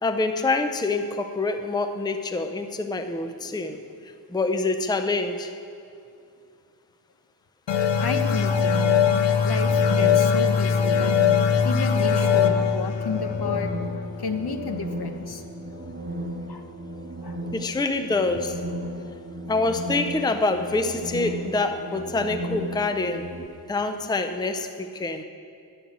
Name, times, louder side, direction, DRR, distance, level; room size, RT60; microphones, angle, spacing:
voice 1, 0.0-3.8 4.3-5.5 17.5-18.6 19.5-23.3 23.7-25.2, left 3 dB, 10° left, 8 dB, 0.5 m, -26 dB
sound 1, 7.7-14.9, left 7 dB, 85° left, 0.7 m, -22 dB
voice 2, 8.0-9.1 9.4-11.1 11.6-13.7 14.2-15.4 16.5-16.6 17.2-17.4, left 4 dB, 60° left, 6 dB, 0.9 m, -31 dB
sound 2, 8.2-23.5, right 1 dB, 25° right, 0.9 m, -36 dB
12.0 x 6.2 x 9.3 m, 2.5 s
wide cardioid pair, 75°, 43 cm